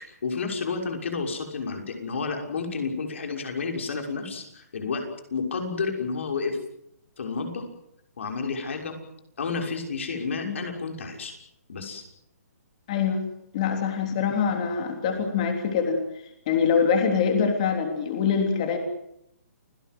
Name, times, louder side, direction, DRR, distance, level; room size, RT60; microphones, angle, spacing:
voice 1, 0.0-5.1 5.3-6.6 7.2-7.7 8.2-9.0 9.4-11.3 11.7-12.0, left 4 dB, 50° left, 4 dB, 6.2 m, -31 dB
voice 2, 12.9-13.2 13.5-16.0 16.5-18.8, left 6 dB, 25° left, 5 dB, 3.4 m, -24 dB
29.5 x 18.0 x 7.9 m, 0.76 s
hypercardioid pair, 180°, 9 cm